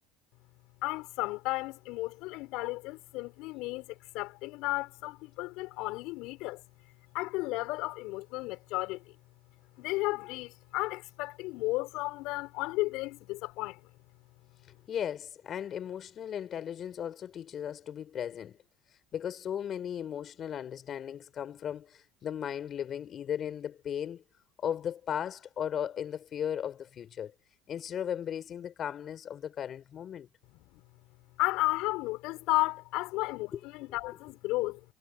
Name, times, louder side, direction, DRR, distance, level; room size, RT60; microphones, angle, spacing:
voice 1, 0.8-6.6 7.1-9.1 9.8-13.9 30.5-30.8 31.4-34.8, left 21 dB, 70° left, 6.7 m, -33 dB
voice 2, 14.9-18.6 18.9-24.2 24.6-27.3 27.7-30.3 33.5-33.6, left 9 dB, 45° left, 4.8 m, -36 dB
supercardioid pair, 80°, 0 cm